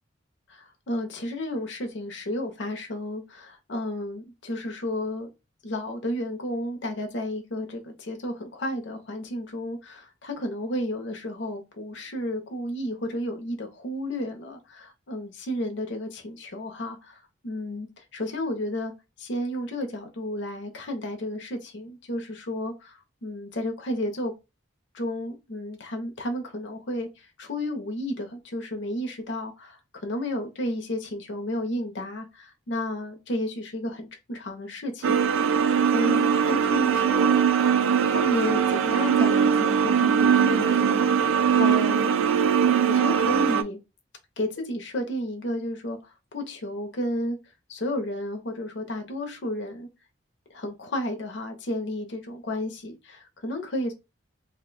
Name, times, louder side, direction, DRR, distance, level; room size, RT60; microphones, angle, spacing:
voice 1, 0.5-5.3 5.6-18.9 19.2-24.3 24.9-37.7 38.0-42.1 42.9-43.8 44.4-47.4 47.7-49.9 50.5-53.9, left 1 dB, 60° left, 0.7 m, -32 dB
sound 1, 35.0-43.6, right 7 dB, 80° right, 0.3 m, -21 dB
2.5 x 2.2 x 3.8 m
head